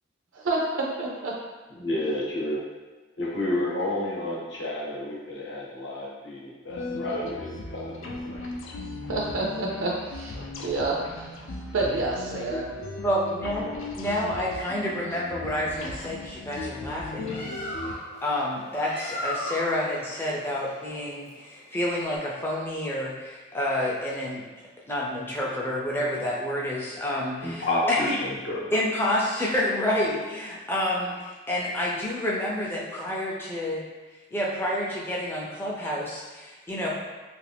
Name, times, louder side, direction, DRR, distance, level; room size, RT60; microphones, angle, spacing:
voice 1, 0.3-1.3 9.1-11.3 11.7-12.7, right 2 dB, 75° right, -2 dB, 0.4 m, -28 dB
voice 2, 1.7-2.6 3.2-8.2 27.4-28.7, left 1 dB, 60° left, -5 dB, 0.8 m, -30 dB
sound 1, 6.7-17.9, left 2 dB, 80° left, 0.4 m, -37 dB
voice 3, 13.0-17.6 18.2-24.4 24.9-28.1 28.7-33.8 34.3-36.9, left 1 dB, 10° left, -4 dB, 0.4 m, -29 dB
Bird, 17.0-22.2, left 1 dB, 30° left, 0.8 m, -37 dB
2.7 x 2.4 x 3.3 m, 1.3 s
head